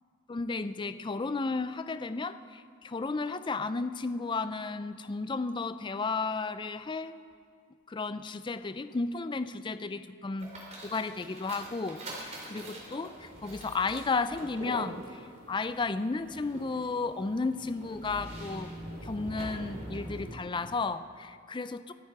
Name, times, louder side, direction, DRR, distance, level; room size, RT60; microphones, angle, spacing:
voice 1, 0.3-7.2 7.9-10.5 10.8-15.2 15.5-18.7 19.0-21.9, left 3 dB, 20° left, 12 dB, 0.4 m, -33 dB
sound 1, 10.4-20.3, right 1 dB, 35° right, 3.5 m, -44 dB
26.0 x 9.2 x 4.7 m, 2.2 s
head